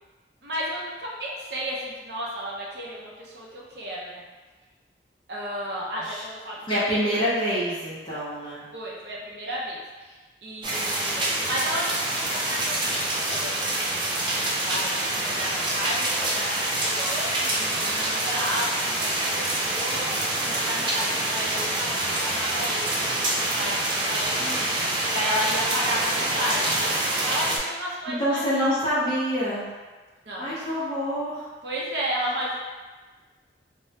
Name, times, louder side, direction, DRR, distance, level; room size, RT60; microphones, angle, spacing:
voice 1, 0.4-4.2 5.3-6.9 8.7-13.8 14.1-14.9 15.2-28.4 30.3-30.6 31.6-32.6, equal, 65° right, -4 dB, 0.7 m, -33 dB
voice 2, 6.7-8.7 28.1-29.7 30.4-31.4, equal, 25° left, -10 dB, 0.7 m, -26 dB
sound 1, 10.6-27.6, right 1 dB, 25° right, 0.4 m, -26 dB
3.3 x 2.2 x 2.7 m, 1.3 s
head